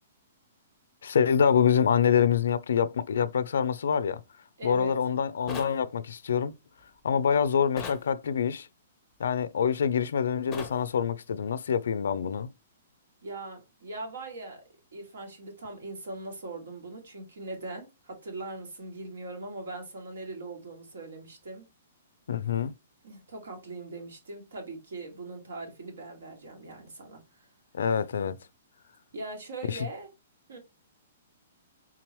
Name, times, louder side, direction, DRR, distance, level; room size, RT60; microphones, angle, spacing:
voice 1, 1.0-4.2 4.6-6.5 7.0-8.7 9.2-12.5 22.3-22.7 27.7-28.4 29.7-29.8, left 7 dB, 75° left, 0.3 m, -26 dB
voice 2, 4.6-4.9 13.2-14.6 14.9-21.7 23.0-27.5 29.1-30.1 30.5-30.6, right 2 dB, 80° right, 1.6 m, -40 dB
sound 1, 5.5-5.8 7.8-8.1 10.5-10.8, left 5 dB, 15° left, 0.6 m, -37 dB
3.7 x 3.0 x 2.9 m
hypercardioid pair, 165°, 0 cm